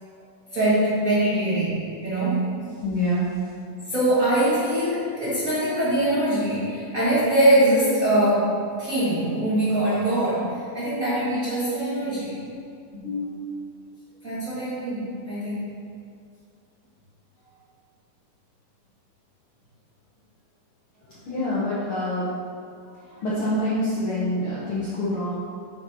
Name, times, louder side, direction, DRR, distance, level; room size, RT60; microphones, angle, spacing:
voice 1, 0.5-2.5 3.7-12.4 12.9-13.5 14.2-15.7 22.7-22.8 23.1-23.2, right 1 dB, 35° right, -11 dB, 1.6 m, -23 dB
voice 2, 2.8-3.3 21.3-22.3 23.2-25.4, left 1 dB, 60° left, -9 dB, 1.5 m, -26 dB
8.3 x 4.2 x 4.6 m, 2.2 s
omnidirectional pair, 3.7 m